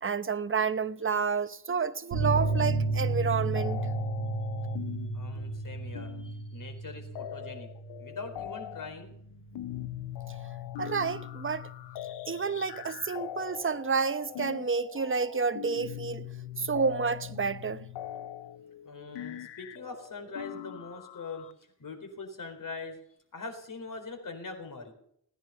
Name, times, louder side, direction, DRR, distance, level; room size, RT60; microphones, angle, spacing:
voice 1, 0.0-3.8 10.8-11.7 12.3-16.2 16.6-17.9, right 5 dB, 30° right, 1.1 m, -30 dB
sound 1, 2.1-9.2 9.5-9.6 9.9-10.0, right 3 dB, 80° right, 1.5 m, -33 dB
sound 2, 2.4-3.0 3.2-21.5, left 12 dB, 85° left, 0.7 m, -42 dB
voice 2, 5.1-7.7 8.0-9.1 18.8-21.5 21.8-23.0 23.3-24.9, left 3 dB, 50° left, 4.2 m, -42 dB
17.5 x 10.0 x 6.9 m
supercardioid pair, 45°, 40 cm